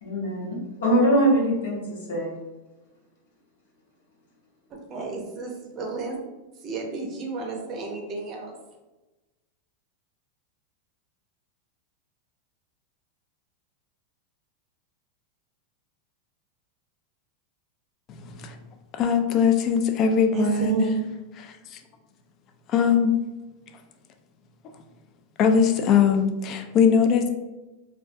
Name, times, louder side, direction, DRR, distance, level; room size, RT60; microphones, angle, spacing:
voice 1, 0.0-2.3, right 1 dB, 80° left, -4 dB, 0.9 m, -23 dB
voice 2, 4.7-6.2 6.6-8.6 20.3-21.0, right 5 dB, 40° right, 1 dB, 0.5 m, -31 dB
voice 3, 18.1-18.6 19.0-20.9 21.4-21.8 22.7-23.1 25.4-27.3, left 6 dB, 40° left, 5 dB, 0.3 m, -21 dB
2.3 x 2.1 x 2.6 m, 1.1 s
hypercardioid pair, 110°, 0 cm